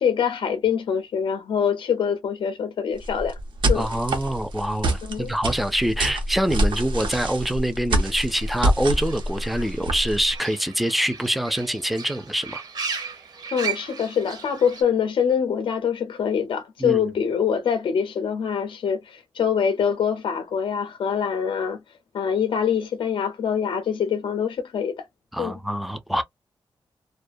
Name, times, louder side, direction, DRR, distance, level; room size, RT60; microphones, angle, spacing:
voice 1, 0.0-3.4 3.7-3.9 5.0-5.3 13.5-21.8 22.1-25.1 25.4-25.5, left 7 dB, 85° left, 0.4 m, -24 dB
sound 1, 3.0-10.3, right 1 dB, 90° right, 0.8 m, -25 dB
voice 2, 3.7-12.6 16.8-17.0 25.3-26.2, right 1 dB, ahead, 0.3 m, -25 dB
Fowl / Bird, 8.4-14.8, right 6 dB, 55° right, 0.7 m, -36 dB
2.3 x 2.1 x 2.4 m
wide cardioid pair, 145°, 8 cm